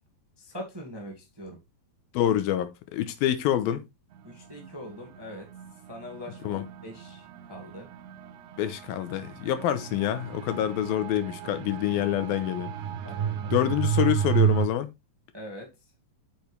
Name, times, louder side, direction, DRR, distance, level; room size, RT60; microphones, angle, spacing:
voice 1, 0.4-1.6 4.2-5.5 5.9-7.9 13.0-13.5 15.3-15.7, left 1 dB, 10° right, 1.2 m, -42 dB
voice 2, 2.1-3.8 6.4-6.7 8.6-12.7 13.5-14.9, left 12 dB, 80° left, 2.7 m, -26 dB
sound 1, 4.1-14.7, right 9 dB, 70° right, 1.9 m, -32 dB
8.2 x 6.6 x 3.3 m
omnidirectional pair, 4.3 m